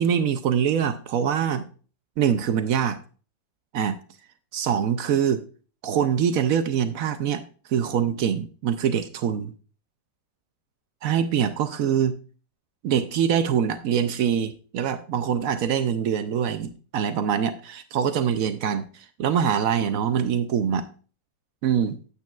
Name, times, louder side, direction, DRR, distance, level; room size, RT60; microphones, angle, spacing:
voice 1, 0.0-1.6 2.2-3.0 3.7-4.0 4.5-5.4 5.8-7.4 7.7-9.5 11.0-12.2 12.8-20.9 21.6-22.0, right 8 dB, 75° right, 10 dB, 0.8 m, -24 dB
9.2 x 8.4 x 2.4 m, 0.38 s
omnidirectional pair, 2.0 m